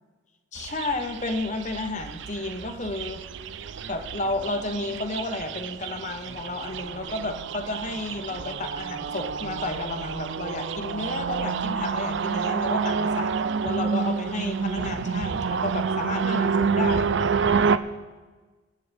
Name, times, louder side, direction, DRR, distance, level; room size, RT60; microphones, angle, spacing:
voice 1, 0.5-3.3 3.9-13.3 13.6-17.1, left 2 dB, 35° left, 6 dB, 1.1 m, -32 dB
sound 1, 0.6-17.8, right 5 dB, 60° right, 0.5 m, -28 dB
23.5 x 9.6 x 3.5 m, 1.3 s
head